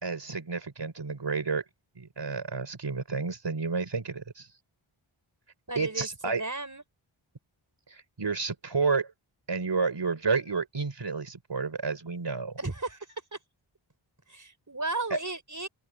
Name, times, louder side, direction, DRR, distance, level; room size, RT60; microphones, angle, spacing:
voice 1, 0.0-1.6 2.0-4.5 5.8-6.4 7.9-9.1 9.5-12.6 15.1-15.2, right 4 dB, 55° right, 3.9 m, -30 dB
voice 2, 5.7-6.8 12.6-13.0 13.3-13.4 14.3-15.7, right 2 dB, 35° right, 5.5 m, -34 dB
open air
cardioid pair, 45°, 50 cm